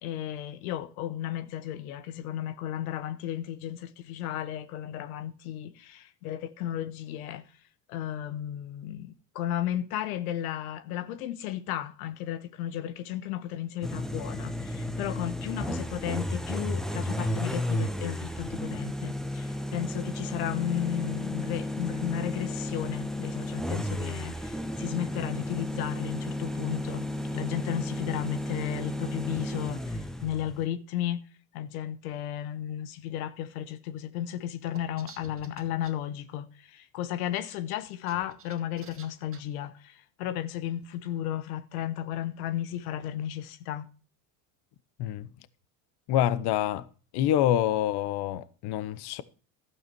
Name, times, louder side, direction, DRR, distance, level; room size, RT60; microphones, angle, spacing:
voice 1, 0.0-7.4 7.9-27.0 27.3-31.2 31.5-43.9, left 11 dB, 90° left, 1.0 m, -34 dB
sound 1, 13.8-30.6, left 1 dB, ahead, 1.1 m, -33 dB
sound 2, 34.7-35.9 37.9-39.4, right 5 dB, 30° right, 2.1 m, -50 dB
voice 2, 45.0-45.3 46.1-46.9 47.1-49.2, left 12 dB, 65° left, 1.0 m, -26 dB
12.5 x 8.9 x 4.5 m
supercardioid pair, 90°, 43 cm